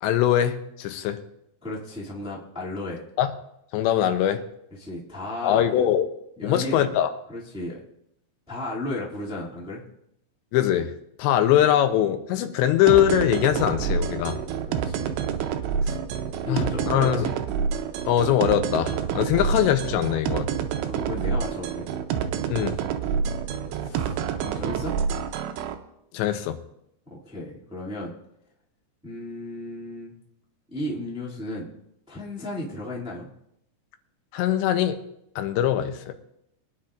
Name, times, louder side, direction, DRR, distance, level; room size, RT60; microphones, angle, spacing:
voice 1, 0.0-1.2 3.2-3.3 3.7-4.4 5.4-6.1 6.4-7.1 10.5-10.9 11.2-14.4 16.5-17.3 18.1-20.5 22.5-22.8 26.1-26.6 34.3-35.0 35.4-36.1, left 11 dB, 90° left, 8 dB, 3.1 m, -22 dB
voice 2, 1.6-3.0 4.7-5.8 6.4-6.9 7.3-7.8 8.5-9.8 14.3-15.2 15.6-15.7 16.4-17.3 20.8-21.8 23.8-24.9 27.1-28.1 29.0-30.1 30.7-31.7 32.1-33.3, left 1 dB, 5° right, -6 dB, 1.0 m, -34 dB
sound 1, 12.9-25.8, right 7 dB, 80° right, 2.9 m, -28 dB
22.5 x 10.0 x 2.5 m, 0.78 s
omnidirectional pair, 4.9 m